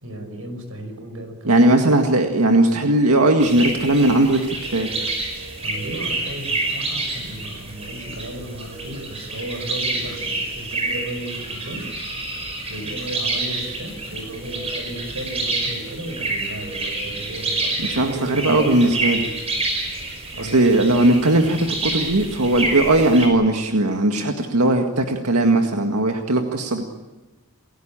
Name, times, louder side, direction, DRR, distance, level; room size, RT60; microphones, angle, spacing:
voice 1, 0.0-1.7 5.6-11.9 12.7-19.0 20.3-20.7, right 1 dB, 70° right, 7 dB, 5.8 m, -34 dB
voice 2, 1.5-5.1 17.8-19.3 20.4-26.8, right 1 dB, 90° right, 4 dB, 1.9 m, -18 dB
sound 1, 3.4-23.3, right 2 dB, 30° right, 5.5 m, -28 dB
29.5 x 16.5 x 8.9 m, 1.1 s
head